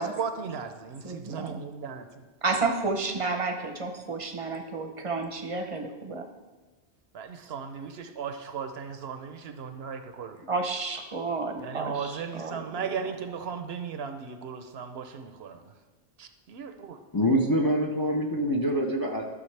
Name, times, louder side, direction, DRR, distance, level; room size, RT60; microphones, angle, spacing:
voice 1, 0.0-2.1 7.1-10.4 11.6-15.6 16.2-17.0, right 6 dB, 70° right, 8 dB, 0.8 m, -36 dB
voice 2, 1.0-1.6 2.4-6.3 10.5-13.1, right 3 dB, 35° right, 5 dB, 0.7 m, -31 dB
voice 3, 17.1-19.2, equal, 25° left, 2 dB, 0.5 m, -25 dB
12.0 x 6.4 x 3.3 m, 1.3 s
omnidirectional pair, 1.1 m